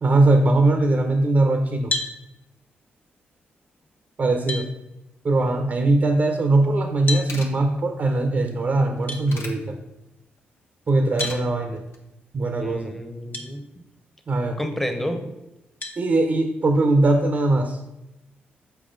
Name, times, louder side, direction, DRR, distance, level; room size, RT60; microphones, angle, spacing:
voice 1, 0.0-1.9 4.2-4.7 5.2-9.8 10.9-11.8 12.3-12.9 14.3-14.6 16.0-17.8, right 2 dB, 45° right, 5 dB, 0.8 m, -20 dB
sound 1, 1.9-2.2 3.8-3.9 4.5-4.7 7.1-7.3 9.1-9.2 11.2-11.4 13.3-13.5 14.1-14.2 15.8-16.0, left 2 dB, 40° left, 1.1 m, -28 dB
sound 2, 6.8-6.9 7.0-7.5 8.7-9.5 10.9-11.4 11.8-12.0, left 3 dB, 80° left, 1.0 m, -37 dB
voice 2, 12.6-13.6 14.6-15.3, equal, 5° left, 6 dB, 1.0 m, -30 dB
6.9 x 4.7 x 3.8 m, 0.93 s
cardioid pair, 70°, 4 cm